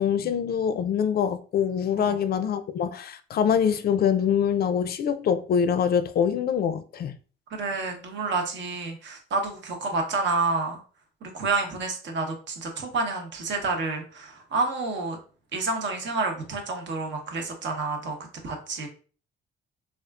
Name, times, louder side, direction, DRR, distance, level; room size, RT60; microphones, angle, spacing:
voice 1, 0.0-7.2, left 8 dB, 50° left, 0.4 m, -24 dB
voice 2, 7.5-10.8 11.2-15.2 15.5-18.2 18.4-18.9, right 3 dB, 65° right, 0.9 m, -29 dB
3.5 x 2.4 x 2.3 m
cardioid pair, 90°, 20 cm